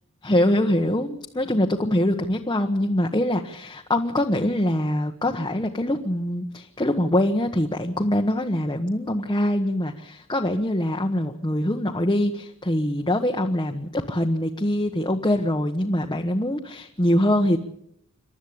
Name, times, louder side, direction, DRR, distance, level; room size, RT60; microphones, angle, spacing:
voice 1, 0.2-17.6, left 1 dB, 20° left, 1 dB, 1.2 m, -23 dB
27.5 x 12.5 x 8.7 m, 0.74 s
head